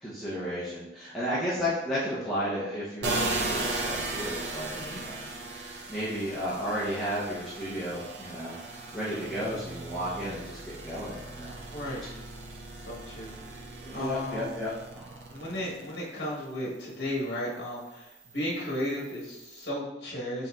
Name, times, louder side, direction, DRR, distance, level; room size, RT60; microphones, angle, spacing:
voice 1, 0.0-8.6 8.9-11.6 13.8-15.3, equal, ahead, -11 dB, 0.6 m, -33 dB
sound 1, 3.0-16.4 16.8-19.7, right 2 dB, 75° right, 0.5 m, -37 dB
voice 2, 11.7-12.0 12.8-13.3 13.9-14.6 15.3-20.5, left 1 dB, 65° left, -4 dB, 1.1 m, -34 dB
5.5 x 2.9 x 2.3 m, 0.95 s
head